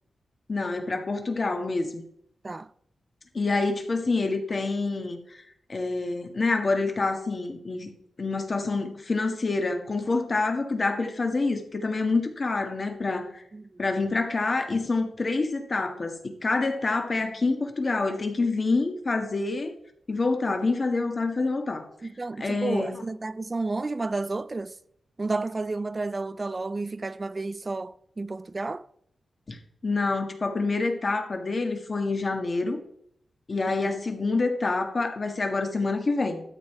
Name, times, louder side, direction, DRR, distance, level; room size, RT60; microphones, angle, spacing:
voice 1, 0.5-2.0 3.3-5.4 5.7-7.9 8.2-13.4 13.8-19.7 20.1-21.9 22.4-23.0 29.5-32.8 33.5-36.4, left 3 dB, 40° left, 1.7 m, -27 dB
voice 2, 22.0-24.7 25.2-28.8 33.7-33.9, right 3 dB, 30° right, 0.5 m, -31 dB
13.0 x 7.7 x 4.5 m
wide cardioid pair, 105°, 0 cm